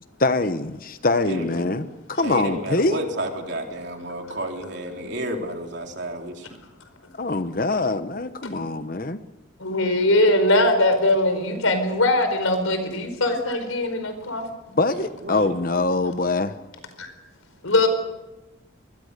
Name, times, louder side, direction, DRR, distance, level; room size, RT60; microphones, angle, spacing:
voice 1, 0.2-3.0 7.2-9.2 14.7-16.5, left 2 dB, 45° left, 0.9 m, -24 dB
voice 2, 1.3-1.9 2.2-6.5 15.2-15.5, right 1 dB, 55° right, 3.5 m, -31 dB
voice 3, 9.6-14.5 17.0-17.1 17.6-17.9, left 1 dB, 90° left, 4.8 m, -21 dB
25.5 x 21.0 x 6.7 m
head